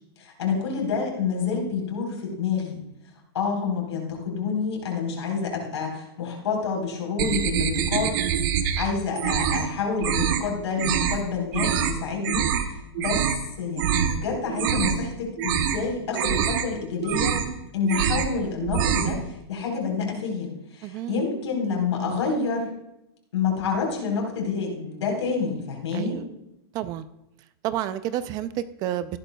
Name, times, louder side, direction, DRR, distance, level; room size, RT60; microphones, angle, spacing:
voice 1, 0.2-2.8 3.3-8.2 8.8-13.3 13.6-17.4 17.7-22.7 23.3-26.2, left 5 dB, 85° left, 0 dB, 4.1 m, -28 dB
sound 1, 7.2-8.9 9.2-9.7 10.0-10.4 10.8-11.2 11.5-11.9 12.2-12.6 12.9-13.4 13.8-14.1 14.5-15.1 15.4-15.8 16.1-16.6 17.0-17.5 17.8-18.3 18.6-19.2, right 9 dB, 50° right, 1.0 m, -25 dB
voice 2, 20.8-21.3 25.9-26.2 26.7-27.1 27.6-29.2, right 12 dB, 25° right, 14 dB, 0.5 m, -30 dB
15.5 x 11.0 x 2.3 m, 0.87 s
hypercardioid pair, 155°, 14 cm